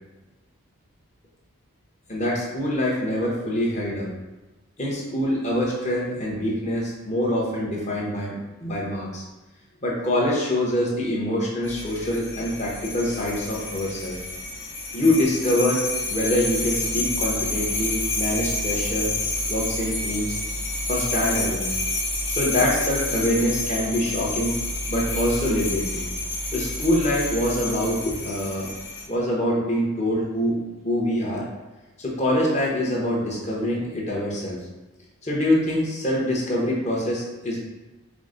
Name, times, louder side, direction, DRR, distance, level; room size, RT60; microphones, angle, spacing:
voice 1, 2.1-4.1 4.8-9.2 9.8-14.2 14.9-19.1 19.5-20.3 20.9-21.7 22.3-24.5 24.9-26.1 26.5-28.7 29.1-31.4 32.0-34.6 35.2-37.6, left 1 dB, 30° left, -4 dB, 0.9 m, -25 dB
sound 1, 11.6-29.0, left 2 dB, 60° left, 0.9 m, -29 dB
4.8 x 2.1 x 3.8 m, 1.1 s
head